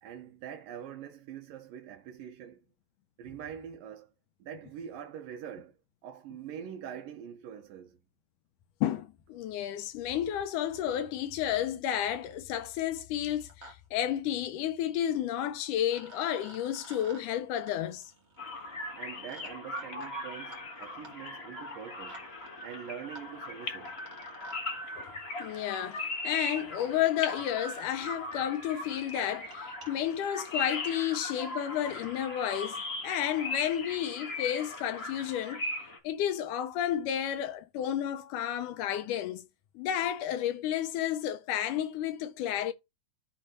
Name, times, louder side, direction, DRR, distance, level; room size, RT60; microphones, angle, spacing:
voice 1, 0.0-2.6 3.2-4.1 4.4-8.0 18.9-22.2 22.6-23.9, right 9 dB, 85° right, 2.8 m, -44 dB
voice 2, 8.8-18.1 25.0-25.1 25.4-35.6 36.0-39.5 39.8-42.7, left 11 dB, 75° left, 2.1 m, -31 dB
sound 1, 11.6-11.7 11.9-12.4 13.2-13.7 14.0-14.1 15.4-15.5 15.9-24.6 25.9-26.0 26.8-26.9 27.6-27.7 27.9-28.0 28.3-28.4 28.7-28.9 29.3-29.9, right 2 dB, 65° right, 0.6 m, -54 dB
sound 2, 18.4-36.0, left 2 dB, 50° left, 0.7 m, -39 dB
13.5 x 4.5 x 3.0 m
omnidirectional pair, 4.0 m